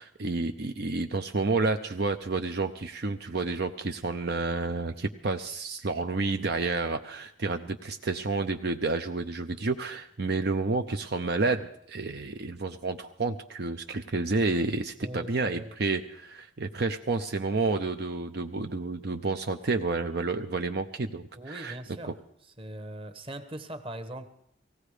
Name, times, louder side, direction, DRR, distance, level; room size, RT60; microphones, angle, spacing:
voice 1, 0.0-21.8, right 3 dB, 60° right, 6 dB, 0.7 m, -30 dB
voice 2, 15.0-15.7 21.3-22.2 22.6-24.2, right 1 dB, 30° right, 9 dB, 1.2 m, -40 dB
18.0 x 16.0 x 5.0 m, 0.71 s
head